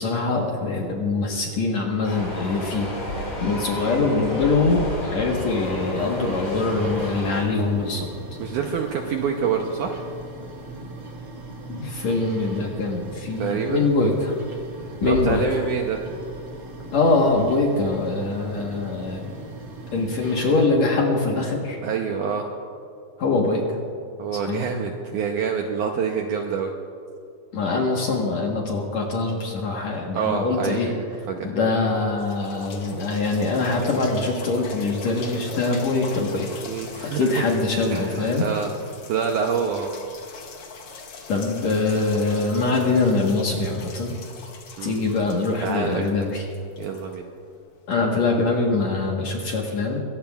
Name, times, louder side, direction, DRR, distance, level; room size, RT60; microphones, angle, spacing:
voice 1, 0.0-8.1 11.7-14.4 15.0-15.4 16.9-19.3 19.9-21.8 23.2-23.6 24.4-24.7 27.5-30.9 31.4-36.6 37.1-38.4 41.3-44.1 44.8-46.5 47.9-50.0, left 3 dB, 60° left, 0 dB, 2.0 m, -23 dB
sound 1, 2.0-7.4, left 1 dB, 30° left, 4.4 m, -31 dB
sound 2, 5.6-20.7, right 1 dB, 45° right, 2.9 m, -38 dB
voice 2, 8.4-10.0 13.4-13.8 14.8-16.0 21.8-22.5 24.2-26.7 30.1-30.9 31.3-31.5 36.6-37.4 37.9-38.7 39.1-39.9 44.8-45.0 45.6-46.3 46.8-47.2, right 6 dB, 75° right, 2 dB, 1.9 m, -27 dB
sound 3, 32.1-47.8 48.5-48.6, left 4 dB, 85° left, 1.2 m, -41 dB
22.5 x 18.0 x 2.4 m, 2.4 s
omnidirectional pair, 4.4 m